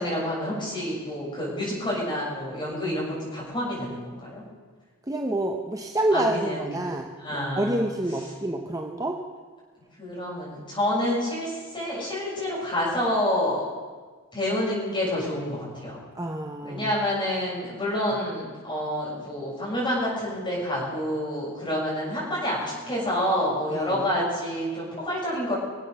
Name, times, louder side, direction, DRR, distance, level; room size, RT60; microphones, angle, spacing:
voice 1, 0.0-4.4 6.1-6.9 7.2-7.9 10.0-13.6 14.3-16.0 16.6-25.5, left 1 dB, 20° left, -6 dB, 6.7 m, -28 dB
voice 2, 5.1-9.2 16.1-16.9 23.7-24.0, right 1 dB, 15° right, 2 dB, 0.8 m, -28 dB
24.0 x 8.4 x 6.8 m, 1.4 s
head